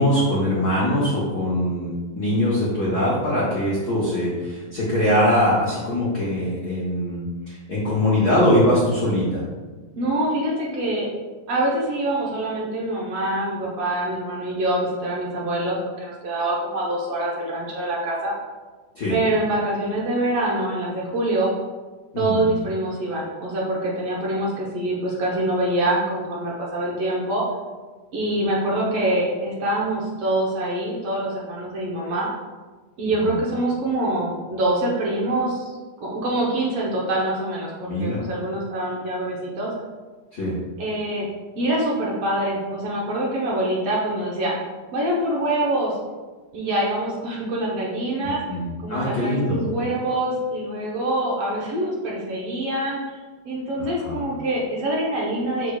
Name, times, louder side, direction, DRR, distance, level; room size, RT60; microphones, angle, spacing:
voice 1, 0.0-9.4 18.9-19.2 22.1-22.5 33.2-33.3 37.9-38.2 40.3-40.6 48.2-49.7 53.8-54.3, left 1 dB, 85° left, -7 dB, 0.8 m, -22 dB
voice 2, 9.9-11.1 11.5-18.3 19.1-21.5 22.2-27.4 28.1-32.3 33.0-35.7 36.0-39.7 40.8-41.3 41.6-44.5 44.9-45.9 46.5-48.4 48.8-53.2 53.5-55.8, right 1 dB, 60° right, -4 dB, 1.8 m, -25 dB
6.6 x 6.1 x 2.3 m, 1.3 s
omnidirectional pair, 3.5 m